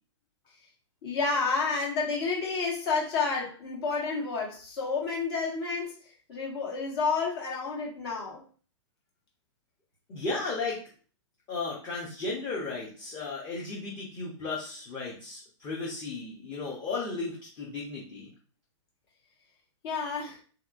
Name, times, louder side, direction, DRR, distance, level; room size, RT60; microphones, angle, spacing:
voice 1, 1.0-8.4 19.8-20.4, left 4 dB, 55° left, -3 dB, 1.6 m, -30 dB
voice 2, 10.1-10.8 11.5-18.3, left 3 dB, 25° left, -3 dB, 0.8 m, -35 dB
3.7 x 2.9 x 2.5 m, 0.41 s
hypercardioid pair, 145°, 16 cm